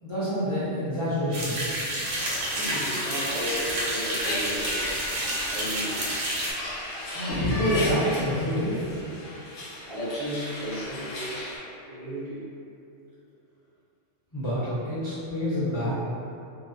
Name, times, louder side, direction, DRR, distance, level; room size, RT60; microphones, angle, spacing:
voice 1, 0.0-1.8 7.1-8.7 14.3-15.9, equal, 30° left, -14 dB, 0.7 m, -27 dB
sound 1, 1.3-6.5, right 1 dB, 85° right, 1.0 m, -30 dB
sound 2, 2.1-11.6, left 1 dB, 80° left, 0.9 m, -36 dB
voice 2, 2.5-4.8 5.5-6.0 9.9-11.5 11.9-12.4, equal, 35° right, -14 dB, 0.6 m, -34 dB
sound 3, 7.3-8.9, equal, 60° right, 0.9 m, -32 dB
2.6 x 2.1 x 2.5 m, 2.7 s
omnidirectional pair, 1.3 m